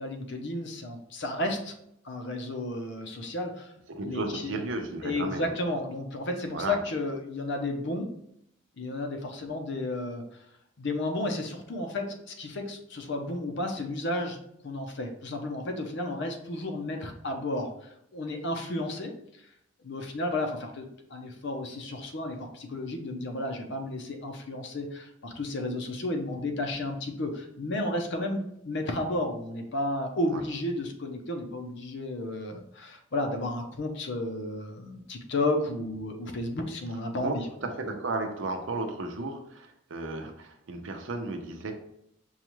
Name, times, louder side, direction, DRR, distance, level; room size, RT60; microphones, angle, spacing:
voice 1, 0.0-1.7 2.0-3.7 4.0-4.5 5.0-8.1 8.8-10.4 10.8-19.5 19.8-37.4, left 1 dB, 65° left, 4 dB, 0.7 m, -32 dB
voice 2, 3.9-5.5 6.5-6.8 30.3-30.4 37.2-41.7, right 2 dB, 75° right, 5 dB, 0.7 m, -34 dB
5.5 x 2.3 x 3.1 m, 0.75 s
head